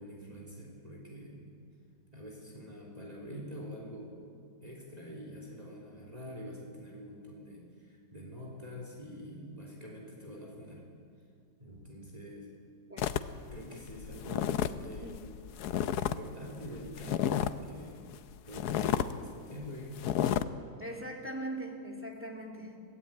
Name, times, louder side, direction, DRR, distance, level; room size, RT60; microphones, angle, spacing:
voice 1, 0.0-1.5 2.1-4.3 4.6-10.8 11.6-12.5 13.5-15.1 15.8-18.0 18.5-20.0, equal, 20° right, -1 dB, 3.3 m, -46 dB
sound 1, 13.0-16.2 16.5-17.7 18.1-18.2 18.5-19.1 19.5-19.7 20.0-20.4, left 10 dB, 70° left, 1.2 m, -31 dB
voice 2, 20.8-22.8, right 1 dB, 5° right, 0 dB, 2.5 m, -40 dB
23.5 x 16.5 x 8.8 m, 2.3 s
omnidirectional pair, 1.8 m